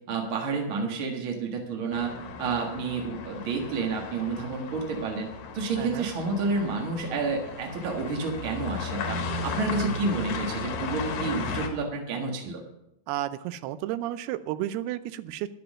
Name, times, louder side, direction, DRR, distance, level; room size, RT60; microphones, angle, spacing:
voice 1, 0.1-2.1 2.4-12.6, right 4 dB, 50° right, 0 dB, 1.6 m, -30 dB
sound 1, 1.9-11.7, left 4 dB, 60° left, 2.3 m, -35 dB
voice 2, 5.8-6.1 13.1-15.5, right 13 dB, 85° right, 14 dB, 2.6 m, -32 dB
11.0 x 10.0 x 6.3 m, 0.84 s
omnidirectional pair, 4.7 m